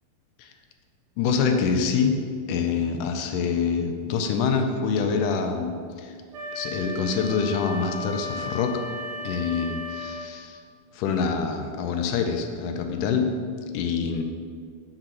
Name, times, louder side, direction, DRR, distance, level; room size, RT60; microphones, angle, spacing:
voice 1, 1.2-2.2 2.5-5.7 6.0-6.1 6.5-8.8 9.2-10.6 10.9-13.3 13.7-14.2, left 5 dB, 80° left, 5 dB, 2.0 m, -25 dB
Wind instrument woodwind instrument, 6.3-10.3, left 2 dB, 70° right, 1.7 m, -35 dB
6.5 x 3.8 x 6.0 m, 2.1 s
omnidirectional pair, 4.0 m